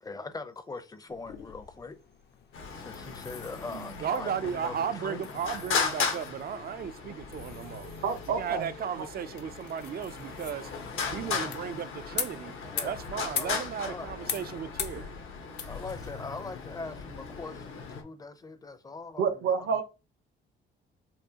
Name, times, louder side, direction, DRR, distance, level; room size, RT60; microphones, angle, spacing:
voice 1, 0.0-2.0 2.7-5.4 12.7-13.0 13.4-14.1 15.6-19.8, left 3 dB, 15° left, 0.6 m, -42 dB
sound 1, 1.1-18.0, left 7 dB, 55° left, 0.7 m, -43 dB
Traffic noise roadway noise, 2.5-18.0, left 5 dB, 75° left, 1.1 m, -37 dB
voice 2, 4.0-10.8 11.1-12.6 12.8-15.2, right 8 dB, 45° right, 0.4 m, -35 dB
voice 3, 8.0-8.7 8.9-9.0 19.2-19.8, right 6 dB, 75° right, 0.9 m, -29 dB
4.5 x 2.4 x 2.8 m
cardioid pair, 85°, 21 cm